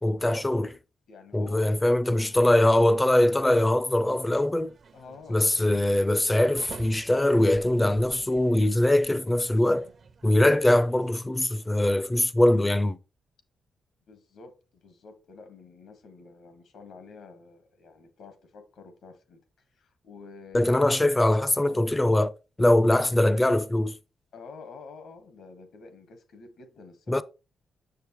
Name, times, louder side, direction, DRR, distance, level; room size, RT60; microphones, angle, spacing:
voice 1, 0.0-0.7 1.3-4.7 5.3-9.9 10.2-13.0 20.5-22.3 22.6-24.0 27.1-27.2, left 1 dB, 15° left, 0.5 m, -22 dB
voice 2, 1.1-2.6 4.9-5.4 14.1-19.4 19.7-20.9 21.6-21.9 24.3-27.2, left 4 dB, 80° left, 1.5 m, -48 dB
sound 1, 3.4-11.1, right 5 dB, 55° right, 0.8 m, -50 dB
6.6 x 6.5 x 3.1 m
cardioid pair, 90°, 0 cm